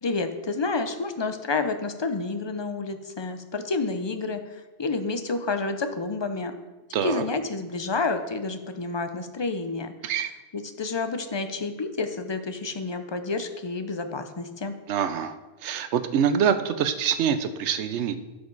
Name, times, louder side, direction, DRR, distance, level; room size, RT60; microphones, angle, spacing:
voice 1, 0.0-6.5 7.0-9.9 10.5-14.7, left 3 dB, 35° left, 8 dB, 0.4 m, -29 dB
voice 2, 6.9-7.2 10.0-10.3 14.9-15.3 15.6-18.2, right 8 dB, 85° right, 11 dB, 0.9 m, -25 dB
12.0 x 5.2 x 4.0 m, 1.2 s
omnidirectional pair, 1.1 m